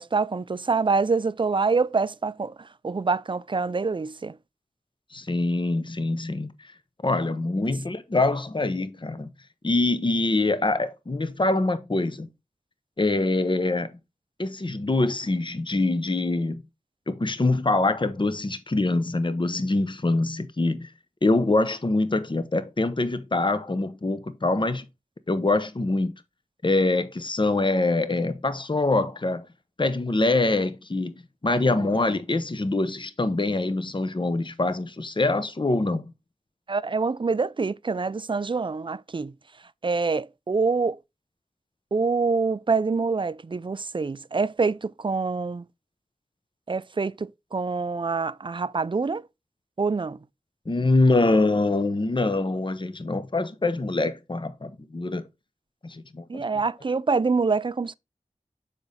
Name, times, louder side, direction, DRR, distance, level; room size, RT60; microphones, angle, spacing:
voice 1, 0.0-4.4 31.5-31.9 36.7-39.3 39.8-41.0 41.9-45.6 46.7-49.3 49.8-50.2 56.3-57.9, right 4 dB, 40° right, 0.4 m, -26 dB
voice 2, 5.1-6.5 7.0-9.3 9.6-12.3 13.0-13.9 14.4-16.6 17.1-20.9 21.2-24.8 25.3-26.1 26.6-29.5 29.8-36.0 50.7-55.2 55.8-56.4, left 2 dB, 35° left, 0.8 m, -24 dB
6.9 x 5.3 x 4.0 m
wide cardioid pair, 60°, 13 cm